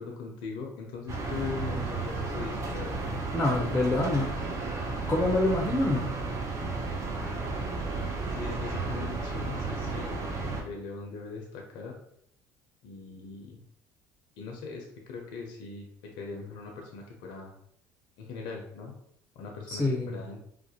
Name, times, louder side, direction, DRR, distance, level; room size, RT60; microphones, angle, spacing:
voice 1, 0.0-3.2 7.1-7.2 8.3-12.0 12.8-13.6 14.4-17.5 18.2-19.0 19.4-20.4, left 4 dB, 75° left, 1 dB, 0.5 m, -40 dB
sound 1, 1.1-10.6, right 3 dB, 40° right, 0.6 m, -33 dB
voice 2, 3.3-4.4 5.1-6.1 19.7-20.2, left 2 dB, 20° left, 0 dB, 0.5 m, -26 dB
2.3 x 2.1 x 2.7 m, 0.70 s
hypercardioid pair, 75°, 8 cm